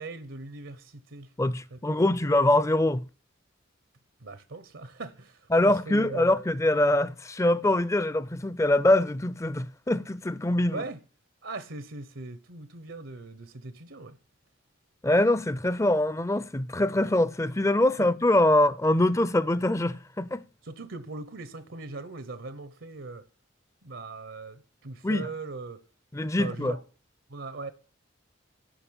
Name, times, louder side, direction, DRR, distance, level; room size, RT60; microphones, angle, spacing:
voice 1, 0.0-1.3 1.7-2.0 4.2-6.3 10.7-11.0 11.4-14.2 18.0-18.1 20.6-23.2 23.8-25.8 26.4-26.8 27.3-27.7, right 3 dB, 80° right, 1.1 m, -39 dB
voice 2, 1.4-3.1 5.5-10.8 15.0-20.4 25.0-25.3 26.1-26.8, left 1 dB, 15° left, 0.5 m, -24 dB
11.5 x 6.0 x 8.8 m
head